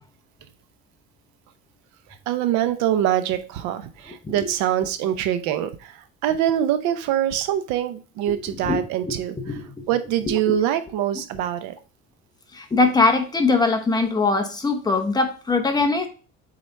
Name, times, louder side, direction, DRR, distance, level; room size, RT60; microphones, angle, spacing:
voice 1, 2.3-6.0 6.2-9.4 9.9-11.7, right 11 dB, 85° right, 0.8 m, -24 dB
voice 2, 8.3-9.1 9.4-9.6 10.3-10.5 12.5-16.1, left 3 dB, 15° left, 0.9 m, -22 dB
7.7 x 4.1 x 3.3 m
cardioid pair, 145°, 29 cm